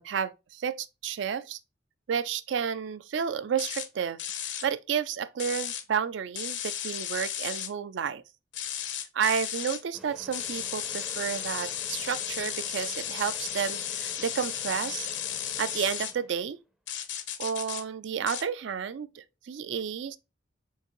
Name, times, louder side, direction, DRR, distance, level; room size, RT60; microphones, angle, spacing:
voice 1, 0.0-1.6 2.1-4.2 4.6-8.2 9.1-15.1 15.6-16.6 17.4-20.2, right 7 dB, 75° right, 0.4 m, -31 dB
sound 1, 3.6-3.9 4.2-4.7 5.4-5.8 6.3-7.7 8.5-9.8 10.3-16.1 16.9-17.8 18.3-18.4, left 10 dB, 75° left, 0.7 m, -34 dB
sound 2, 9.9-16.6, right 1 dB, 5° right, 0.4 m, -49 dB
4.6 x 3.5 x 3.0 m
head